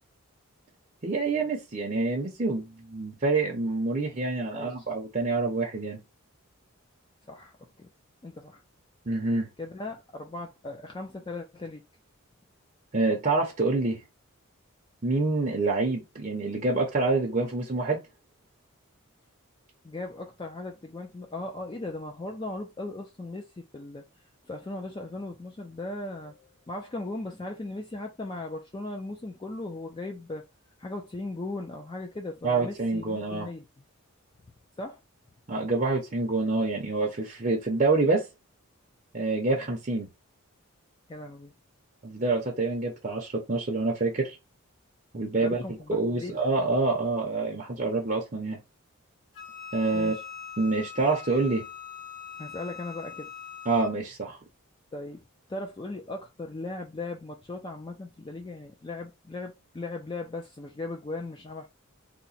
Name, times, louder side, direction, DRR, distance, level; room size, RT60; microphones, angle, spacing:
voice 1, 1.0-6.0 9.1-9.5 12.9-14.0 15.0-18.0 32.4-33.5 35.5-38.3 39.1-40.1 42.0-44.4 45.1-45.6 45.9-48.6 49.7-50.1 50.6-51.6 53.7-54.4, right 3 dB, 35° right, 0.6 m, -27 dB
voice 2, 4.5-4.9 7.3-7.9 8.2-8.6 9.6-11.8 19.8-24.0 24.5-30.5 30.8-33.6 34.8-35.0 41.1-41.5 45.4-46.3 49.9-50.2 52.4-53.3 54.9-55.2 55.5-61.7, left 2 dB, 20° left, 0.3 m, -38 dB
Wind instrument woodwind instrument, 49.3-54.0, left 7 dB, 65° left, 0.9 m, -42 dB
2.8 x 2.1 x 4.0 m
head